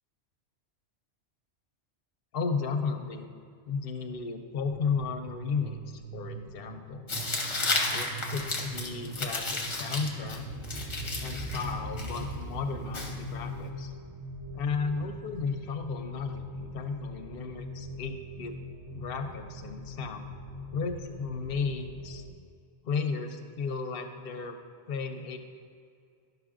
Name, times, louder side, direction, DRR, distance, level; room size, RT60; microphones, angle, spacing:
voice 1, 2.3-3.3 3.6-7.1 7.9-10.5 11.2-13.9 14.5-18.6 18.9-20.2 20.7-22.2 22.8-24.6 24.9-25.4, left 5 dB, 60° left, 6 dB, 0.7 m, -34 dB
sound 1, 4.6-22.3, equal, 25° right, 0.5 m, -42 dB
Tearing, 7.1-13.7, left 2 dB, 30° left, 0.7 m, -34 dB
10.5 x 5.9 x 2.5 m, 2.3 s
omnidirectional pair, 1.2 m